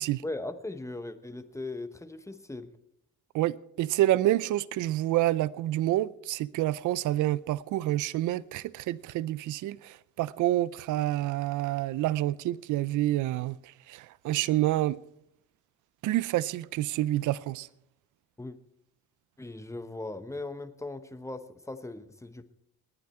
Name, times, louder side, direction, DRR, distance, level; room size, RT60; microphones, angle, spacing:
voice 1, 0.2-2.7 18.4-18.6 19.4-22.4, left 2 dB, 10° left, 1.1 m, -38 dB
voice 2, 3.3-15.0 16.0-17.7, right 15 dB, 80° right, 0.5 m, -28 dB
19.5 x 9.8 x 4.4 m
cardioid pair, 90°, 30 cm